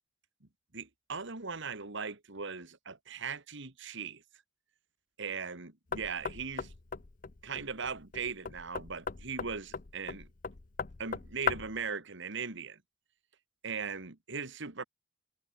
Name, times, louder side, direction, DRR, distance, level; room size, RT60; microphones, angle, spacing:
voice 1, 0.7-4.2 5.2-6.7 7.4-10.3 11.0-12.8 13.6-14.8, right 5 dB, 60° right, 2.0 m, -39 dB
Knock, 5.9-11.8, left 6 dB, 40° left, 0.8 m, -38 dB
head